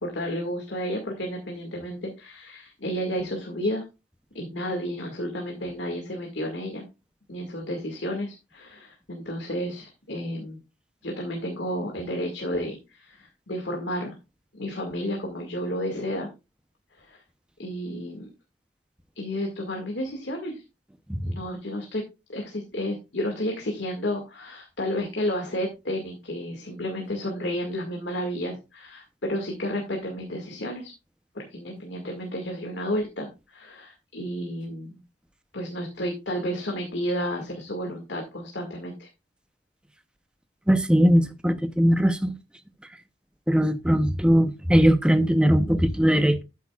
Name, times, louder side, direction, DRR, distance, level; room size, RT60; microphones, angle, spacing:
voice 1, 0.0-3.8 4.3-6.9 7.3-10.6 11.0-14.2 14.5-16.3 16.9-17.2 17.6-18.3 19.2-20.6 21.3-22.0 22.3-30.9 31.3-35.0 35.5-39.1, equal, 75° left, 2.0 m, -31 dB
voice 2, 40.7-42.3 43.5-46.4, equal, 5° right, 0.7 m, -20 dB
13.0 x 8.3 x 2.4 m
head